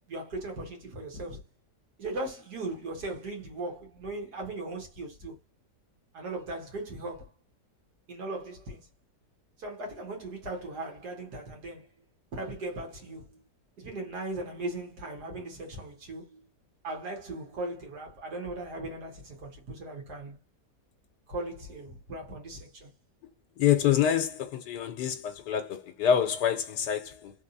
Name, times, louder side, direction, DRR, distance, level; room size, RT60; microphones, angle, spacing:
voice 1, 0.1-1.4 2.0-5.4 6.1-7.3 8.1-8.9 9.6-11.9 12.3-13.4 13.8-16.5 16.8-20.4 21.3-22.9, right 2 dB, 70° right, 2.0 m, -38 dB
voice 2, 23.6-27.3, left 9 dB, 85° left, 1.3 m, -26 dB
3.6 x 3.4 x 2.6 m
omnidirectional pair, 1.8 m